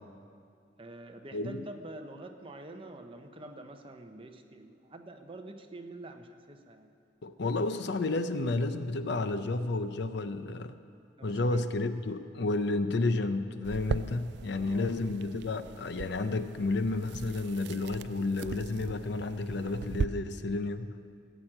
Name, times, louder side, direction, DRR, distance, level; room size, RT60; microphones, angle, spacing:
voice 1, 0.8-6.9 11.2-11.7 14.6-15.0, right 2 dB, 30° right, 5 dB, 0.9 m, -46 dB
voice 2, 1.3-1.6 7.2-10.8 11.2-20.9, left 2 dB, 60° left, 10 dB, 0.6 m, -31 dB
sound 1, 13.6-20.1, right 5 dB, 60° right, 0.3 m, -39 dB
16.0 x 6.3 x 8.8 m, 2.2 s
head